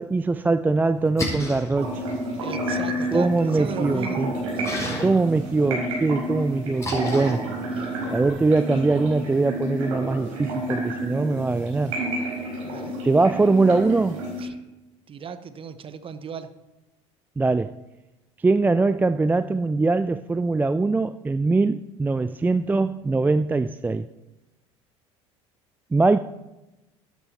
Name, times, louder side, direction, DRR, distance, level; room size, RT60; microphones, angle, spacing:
voice 1, 0.0-2.0 3.1-4.3 5.0-7.4 8.1-11.9 13.0-14.2 17.4-17.8 18.4-24.1 25.9-26.2, right 3 dB, 10° right, 0.3 m, -22 dB
Splash splatter, 0.9-8.3, left 1 dB, 20° left, 5.3 m, -36 dB
sound 1, 1.8-14.4, right 1 dB, 80° right, 5.2 m, -30 dB
voice 2, 2.4-4.3 4.6-4.7 7.8-7.9 12.6-13.0 14.4-14.6 15.1-16.5, right 6 dB, 35° right, 1.0 m, -36 dB
12.5 x 10.5 x 4.3 m
hypercardioid pair, 70°, 16 cm